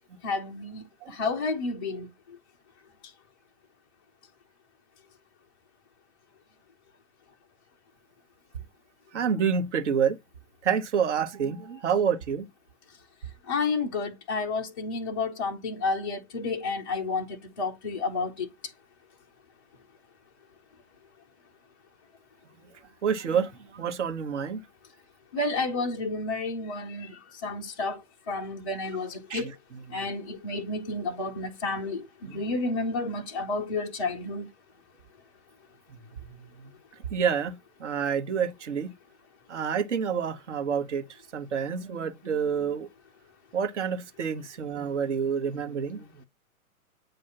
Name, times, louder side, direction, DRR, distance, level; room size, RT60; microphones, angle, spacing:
voice 1, 0.2-0.8 1.1-2.1 13.5-17.2 17.6-18.5 25.3-27.1 27.4-28.0 28.3-29.5 29.9-34.5, left 3 dB, 20° left, 0.4 m, -30 dB
voice 2, 9.1-10.2 10.6-12.5 23.0-24.6 29.3-30.0 32.3-32.4 35.9-36.0 36.2-36.7 37.1-38.9 39.5-41.0 41.3-42.9 43.5-46.2, right 7 dB, 50° right, 1.1 m, -28 dB
7.8 x 2.6 x 5.7 m
figure-of-eight pair, 115°, 44 cm